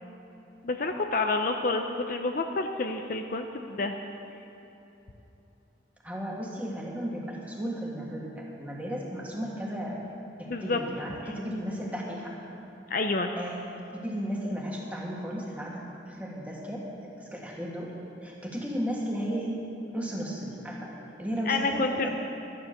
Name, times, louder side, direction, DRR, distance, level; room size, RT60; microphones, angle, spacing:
voice 1, 0.6-3.9 10.5-10.8 12.9-13.3 21.5-22.1, left 3 dB, 45° left, 5 dB, 0.6 m, -28 dB
voice 2, 6.0-10.0 10.4-12.3 13.4-13.6 14.0-16.8 17.2-17.9 18.2-19.6 19.9-20.9 21.2-22.1, equal, 10° right, -3 dB, 1.7 m, -34 dB
12.5 x 10.0 x 6.6 m, 3.0 s
head